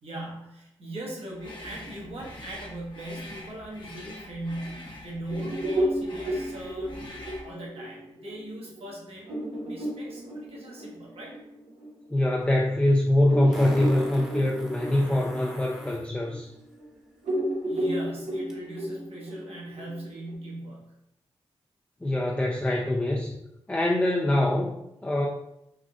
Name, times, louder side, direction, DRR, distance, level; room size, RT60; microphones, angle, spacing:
voice 1, 0.0-7.1 7.4-9.3 9.6-11.4 17.6-21.0, right 1 dB, 65° right, -4 dB, 1.1 m, -39 dB
sound 1, 1.4-7.5, left 1 dB, 50° left, 0.9 m, -44 dB
sound 2, 5.3-12.4 12.8-12.9 13.3-16.9 17.2-20.3, equal, 90° right, 0.8 m, -32 dB
voice 2, 12.1-16.5 22.0-23.4 23.7-24.8 25.0-25.3, left 1 dB, 10° left, -1 dB, 0.4 m, -24 dB
Fart, 12.4-12.5 13.5-16.1 18.5-18.6, equal, 5° right, 0.9 m, -41 dB
3.6 x 2.5 x 2.3 m, 0.83 s
supercardioid pair, 45°, 11 cm